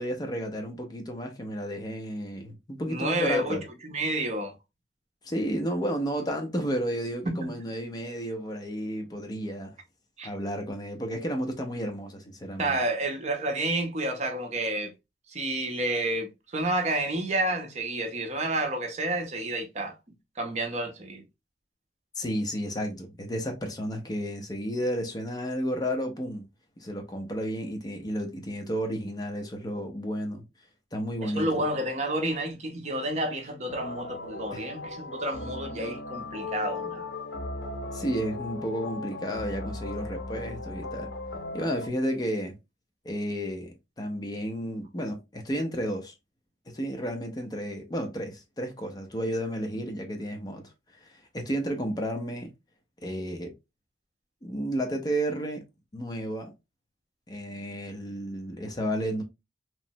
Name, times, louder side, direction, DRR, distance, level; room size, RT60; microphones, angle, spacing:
voice 1, 0.0-3.6 5.2-9.8 10.2-12.8 22.2-26.4 26.8-30.4 30.9-31.6 34.5-34.7 37.9-41.1 41.5-42.5 43.0-46.2 46.7-50.6 50.9-52.5 53.0-53.5 54.4-55.6 55.9-56.5 57.3-59.2, equal, 25° left, 0.5 m, -32 dB
voice 2, 2.9-3.6 3.8-4.5 7.3-7.5 10.2-10.3 12.6-14.9 15.3-20.0 20.4-21.2 31.2-37.1, right 1 dB, 40° right, 0.6 m, -30 dB
sound 1, 33.7-41.9, left 2 dB, 80° left, 0.6 m, -37 dB
3.0 x 2.0 x 2.6 m
head